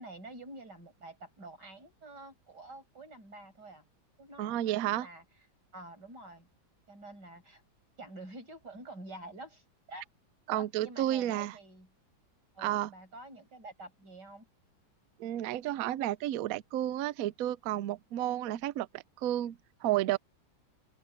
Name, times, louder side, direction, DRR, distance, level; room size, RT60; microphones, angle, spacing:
voice 1, 0.0-3.8 4.2-5.2 5.7-6.5 6.9-7.6 8.0-10.1 10.5-11.9 12.5-14.5, right 2 dB, 55° right, 6.7 m, -48 dB
voice 2, 4.4-5.1 10.5-11.5 12.6-12.9 15.2-20.2, right 13 dB, 80° right, 0.8 m, -32 dB
open air
omnidirectional pair, 2.1 m